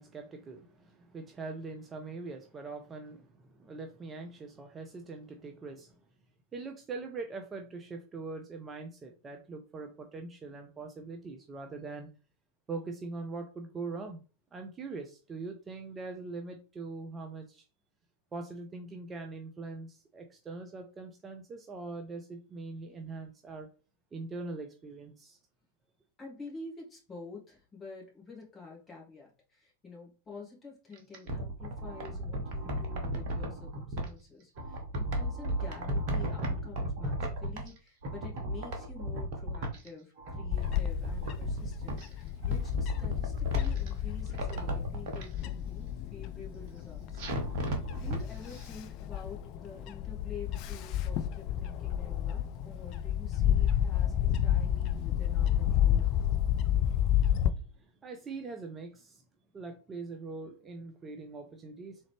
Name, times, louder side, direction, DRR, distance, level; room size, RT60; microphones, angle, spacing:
voice 1, 0.0-6.0 6.5-12.1 12.7-14.2 14.5-17.6 18.3-23.7 24.1-25.4 47.4-48.0 57.5-59.2 59.5-62.0, right 3 dB, 20° right, 4 dB, 0.5 m, -42 dB
voice 2, 26.2-47.2 47.5-56.1, left 4 dB, 20° left, -2 dB, 1.7 m, -48 dB
sound 1, 30.9-34.1 34.6-37.8 38.0-39.9 40.2-42.1 42.4-43.9 44.3-45.2 47.2-48.2 48.5-48.6, right 1 dB, 45° right, 1.0 m, -34 dB
Bird / Wind, 40.5-57.5, left 10 dB, 40° left, 0.3 m, -30 dB
3.6 x 3.2 x 3.4 m, 0.35 s
figure-of-eight pair, 90°, 0 cm